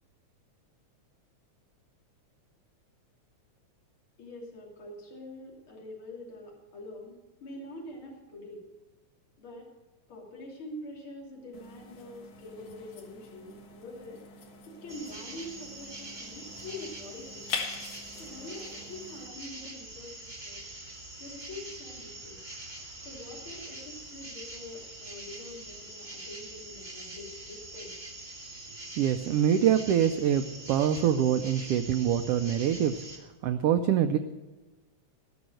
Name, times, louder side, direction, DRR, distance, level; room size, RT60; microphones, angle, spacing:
voice 1, 4.2-8.6 9.4-9.7 10.1-14.2 14.7-17.5 18.2-20.6 21.2-22.4 23.1-27.9, left 1 dB, 45° left, -2 dB, 3.6 m, -45 dB
sound 1, 11.5-19.3, left 5 dB, 75° left, 2.9 m, -43 dB
sound 2, 14.9-33.2, right 2 dB, 15° right, 2.3 m, -44 dB
voice 2, 29.0-32.9 33.4-34.2, right 9 dB, 80° right, 8 dB, 1.3 m, -25 dB
17.5 x 6.3 x 7.7 m, 1.2 s
omnidirectional pair, 3.4 m